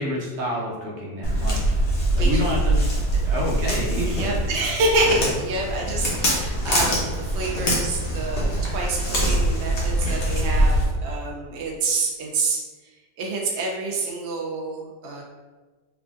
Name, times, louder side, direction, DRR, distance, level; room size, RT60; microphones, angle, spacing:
voice 1, 0.0-1.6 2.1-2.8 3.2-4.4, equal, 50° right, -4 dB, 1.0 m, -28 dB
Walk footsteps, 1.2-10.8, right 1 dB, 50° left, 0.9 m, -23 dB
voice 2, 4.1-12.6 13.2-15.2, right 2 dB, 85° right, -1 dB, 0.6 m, -27 dB
3.6 x 3.5 x 2.5 m, 1.3 s
omnidirectional pair, 1.9 m